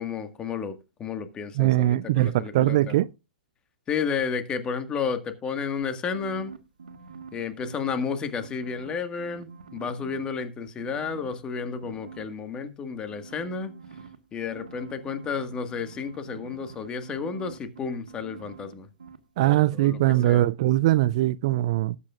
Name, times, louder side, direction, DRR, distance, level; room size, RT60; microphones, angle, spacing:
voice 1, 0.0-2.9 3.9-6.6 7.3-13.7 14.3-18.9 19.4-20.0 20.2-20.5, left 6 dB, 20° left, 1.7 m, -32 dB
voice 2, 1.5-3.1 19.4-22.0, right 15 dB, 45° right, 0.4 m, -21 dB
sound 1, 5.8-8.1 8.4-10.4 10.8-12.2 13.1-18.7 19.0-19.2, right 5 dB, 70° right, 1.7 m, -45 dB
19.0 x 8.4 x 2.4 m
figure-of-eight pair, 115°, 5 cm